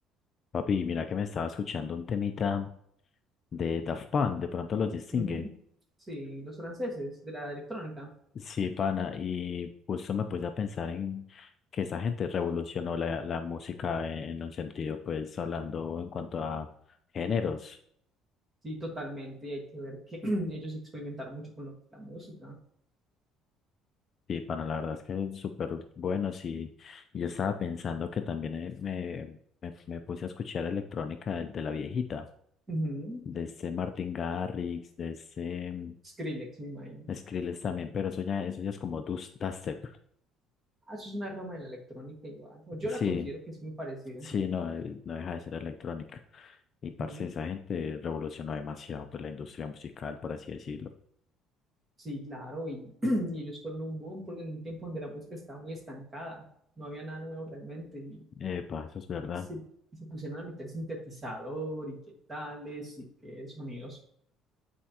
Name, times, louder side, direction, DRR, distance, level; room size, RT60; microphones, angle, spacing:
voice 1, 0.5-2.7 3.5-5.5 8.3-16.7 17.1-17.8 24.3-32.3 33.3-35.9 37.1-40.0 43.0-43.3 44.2-50.9 58.4-59.5, left 6 dB, 30° left, 7 dB, 0.4 m, -33 dB
voice 2, 5.1-5.5 6.1-8.1 18.6-22.6 32.7-33.2 36.0-37.1 40.9-44.3 47.0-47.2 52.0-56.4 56.8-58.2 59.5-59.6 59.9-62.0 62.3-64.0, equal, 20° right, 0 dB, 1.6 m, -38 dB
8.3 x 4.3 x 2.8 m, 0.68 s
cardioid pair, 160°, 0 cm